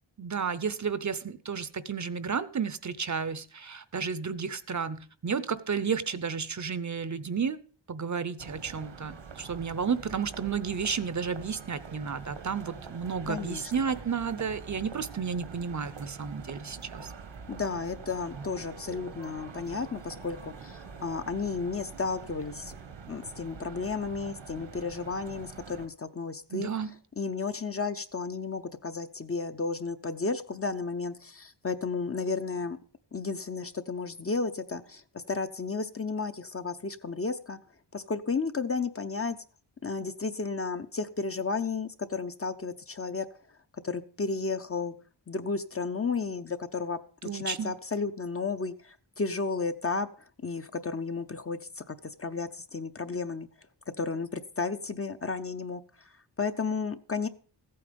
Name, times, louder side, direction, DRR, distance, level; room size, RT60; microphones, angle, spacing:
voice 1, 0.2-7.6 7.9-17.1 26.5-26.9 47.2-47.7, right 6 dB, 40° right, 15 dB, 0.7 m, -32 dB
sound 1, 8.4-25.9, right 5 dB, 90° right, 1.5 m, -45 dB
voice 2, 13.3-13.7 17.5-22.7 23.1-26.7 27.2-32.8 33.1-37.6 37.9-39.4 39.8-43.6 43.8-44.9 45.3-53.5 54.0-57.3, left 4 dB, 30° left, 9 dB, 0.6 m, -33 dB
15.0 x 8.7 x 5.1 m, 0.41 s
wide cardioid pair, 140°, 43 cm